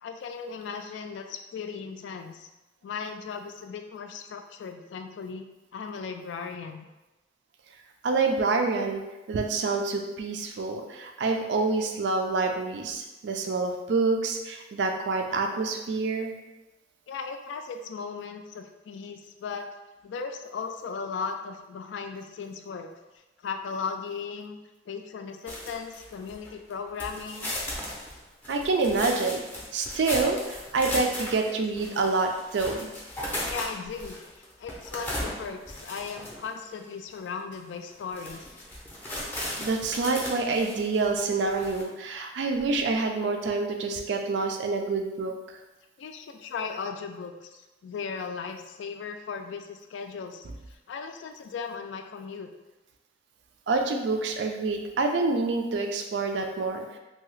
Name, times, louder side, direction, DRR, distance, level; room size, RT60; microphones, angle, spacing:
voice 1, 0.0-2.5 2.8-5.5 5.7-6.9 17.1-19.7 20.0-22.9 23.4-24.6 24.9-27.5 33.3-34.2 34.6-38.5 46.0-47.5 47.8-52.5, left 5 dB, 85° left, 6 dB, 0.3 m, -37 dB
voice 2, 8.0-9.0 9.3-16.3 28.5-29.4 29.7-32.9 39.6-45.3 53.7-56.8, right 3 dB, 75° right, 3 dB, 0.4 m, -27 dB
sound 1, 25.5-26.7 27.0-36.6 37.1-37.2 37.5-37.6 38.0-41.8, left 1 dB, 10° left, 0.5 m, -36 dB
2.7 x 2.3 x 3.1 m, 1.1 s
head